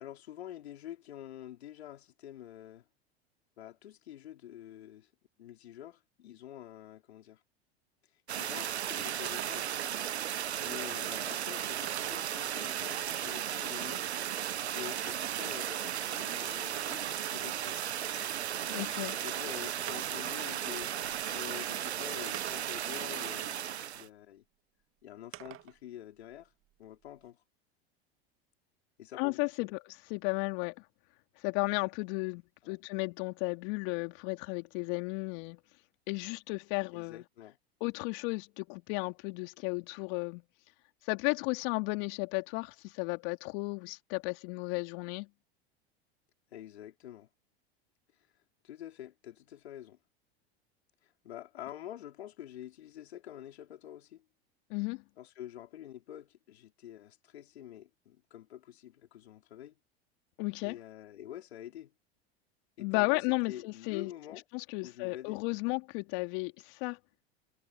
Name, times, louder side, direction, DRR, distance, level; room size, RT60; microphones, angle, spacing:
voice 1, 0.0-2.8 3.6-5.1 5.4-7.4 8.4-9.7 10.6-14.1 14.7-17.8 19.2-20.9 21.3-23.7 23.9-24.4 25.0-26.5 26.8-27.4 29.0-29.7 32.6-32.8 36.9-37.6 46.5-47.3 48.6-50.0 51.0-54.2 55.2-59.7 60.6-61.9 62.8-64.4 64.8-65.4, left 11 dB, 80° left, 3.5 m, -47 dB
sound 1, 8.3-24.1, right 10 dB, 90° right, 0.9 m, -35 dB
sound 2, 9.3-10.0 11.1-11.2 11.9-12.3 12.9-14.3 16.6-17.5 19.0-19.1 19.9-20.3 21.3-21.4 22.3-23.0 25.3-25.8 26.2-27.3, right 14 dB, 40° right, 2.2 m, -49 dB
voice 2, 18.7-19.2 29.2-30.7 31.4-35.6 36.1-37.2 37.8-40.4 41.1-45.3 54.7-55.0 60.4-60.8 62.8-64.1 64.5-67.0, left 30 dB, 60° left, 2.8 m, -34 dB
hypercardioid pair, 90°, 32 cm